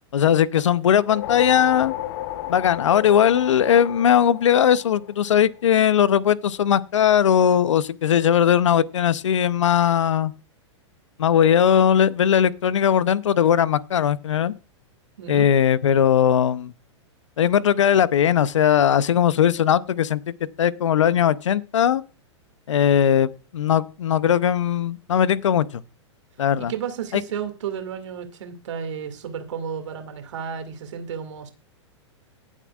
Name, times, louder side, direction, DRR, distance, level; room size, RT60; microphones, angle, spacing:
voice 1, 0.1-1.9 2.5-10.3 11.2-14.5 15.3-16.7 17.4-20.2 20.6-22.0 22.7-25.8 26.4-26.7 27.1-27.2, left 9 dB, 80° left, 0.7 m, -19 dB
sound 1, 0.9-5.5, left 13 dB, 60° left, 1.1 m, -33 dB
voice 2, 15.2-15.5 26.6-31.5, right 7 dB, 75° right, 2.3 m, -32 dB
18.5 x 7.4 x 2.4 m
hypercardioid pair, 110°, 15 cm